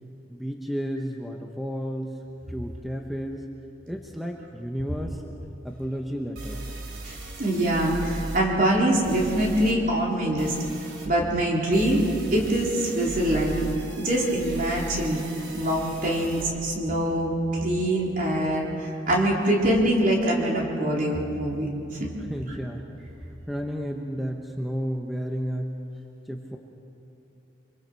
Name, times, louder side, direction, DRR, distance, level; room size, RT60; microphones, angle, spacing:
voice 1, 0.3-2.2 2.5-3.4 3.9-5.2 5.6-6.6 22.3-22.8 23.5-25.7 26.3-26.6, equal, ahead, 1 dB, 0.9 m, -32 dB
sound 1, 5.7-5.8 6.3-8.4 9.0-9.7 10.4-11.1 11.7-16.4, right 1 dB, 85° right, 3.1 m, -37 dB
voice 2, 7.0-10.5 11.0-12.0 12.3-13.6 14.0-15.2 15.5-17.3 17.6-21.7, right 1 dB, 45° right, -3 dB, 3.7 m, -24 dB
25.5 x 23.0 x 4.5 m, 2.9 s
head